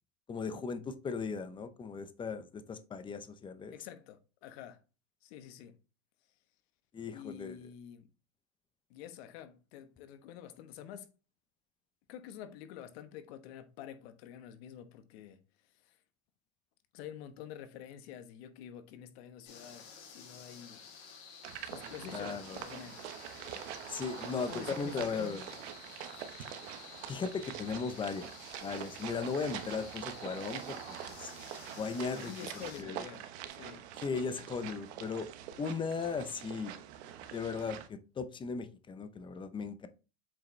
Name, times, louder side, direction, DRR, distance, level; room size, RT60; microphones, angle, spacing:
voice 1, 0.3-3.7 6.9-7.5 22.1-22.6 23.9-25.4 27.1-28.3 28.6-30.8 31.2-31.3 31.8-32.3 32.8-33.0 34.0-35.3 35.6-36.7 37.3-39.9, left 5 dB, 15° left, 0.6 m, -37 dB
voice 2, 3.7-4.8 5.2-5.7 7.1-8.1 8.9-11.1 12.1-15.4 15.8-16.0 16.9-20.9 21.7-23.0 24.3-25.3 32.2-33.9, left 10 dB, 70° left, 1.2 m, -48 dB
sound 1, 19.4-32.8, left 6 dB, 90° left, 3.2 m, -52 dB
sound 2, 21.4-37.9, right 11 dB, 75° right, 1.1 m, -45 dB
7.6 x 4.8 x 3.2 m
supercardioid pair, 140°, 33 cm